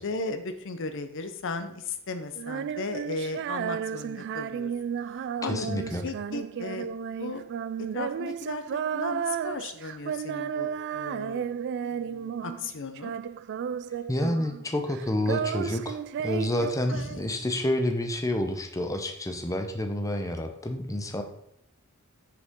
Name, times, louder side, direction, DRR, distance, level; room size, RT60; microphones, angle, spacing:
voice 1, 0.0-4.7 5.2-6.9 7.2-7.4 7.8-11.5 11.9-13.1 16.9-17.2, left 3 dB, 60° left, 9 dB, 0.7 m, -36 dB
Female singing, 2.4-12.7 13.0-14.6 14.9-17.6, right 8 dB, 55° right, 0.3 m, -33 dB
voice 2, 5.5-6.0 14.1-21.2, left 1 dB, 15° left, 5 dB, 0.7 m, -29 dB
7.9 x 6.6 x 3.6 m, 0.75 s
head